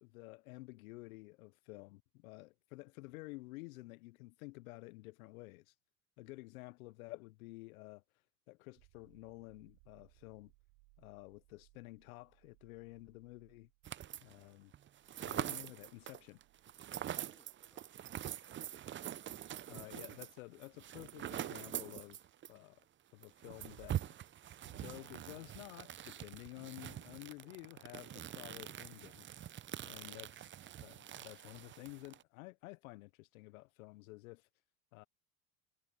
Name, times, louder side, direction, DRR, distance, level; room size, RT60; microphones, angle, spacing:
voice 1, 0.0-5.7 6.2-8.0 8.5-10.5 11.0-13.7 14.2-14.7 15.2-16.4 19.7-22.2 22.5-22.8 23.1-24.0 24.8-29.3 29.8-30.5 30.8-34.5 34.9-35.1, left 22 dB, 80° left, 0.6 m, -52 dB
sound 1, 8.7-22.3 25.0-25.1, right 36 dB, 70° right, 3.6 m, -72 dB
sound 2, 13.8-14.4 14.7-22.6 22.8-22.9 23.2-32.2, right 11 dB, 30° right, 0.6 m, -44 dB
voice 2, 17.3-18.6 27.4-27.5 28.2-28.3, equal, ahead, 5.4 m, -73 dB
sound 3, 24.5-26.4 29.4-31.7, right 15 dB, 85° right, 5.5 m, -70 dB
hypercardioid pair, 85°, 41 cm